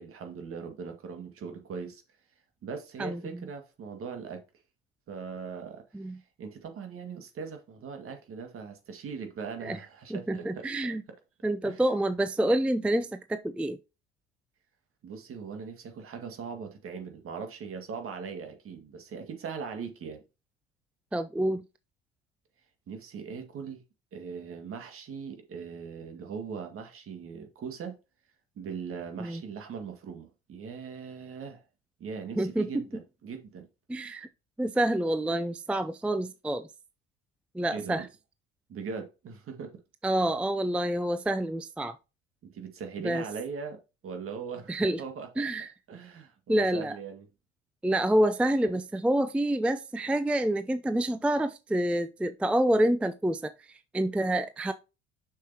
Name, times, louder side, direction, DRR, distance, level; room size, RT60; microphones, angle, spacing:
voice 1, 0.0-2.0 2.6-4.4 5.1-5.8 6.4-10.7 11.6-11.8 15.0-20.2 22.9-23.8 24.1-28.0 28.6-31.6 32.0-33.7 37.7-38.1 38.7-39.8 42.4-45.5 45.9-47.3, right 6 dB, 50° right, 1.9 m, -40 dB
voice 2, 3.0-3.5 5.9-6.2 9.6-9.8 10.1-11.0 11.4-13.8 21.1-21.6 29.2-29.4 32.4-32.8 33.9-34.3 34.6-36.7 37.5-38.1 40.0-41.9 43.0-43.2 44.7-45.0 45.4-45.7 46.5-47.0 47.8-54.7, right 1 dB, 5° right, 0.4 m, -27 dB
6.6 x 6.6 x 2.8 m
supercardioid pair, 85°, 29 cm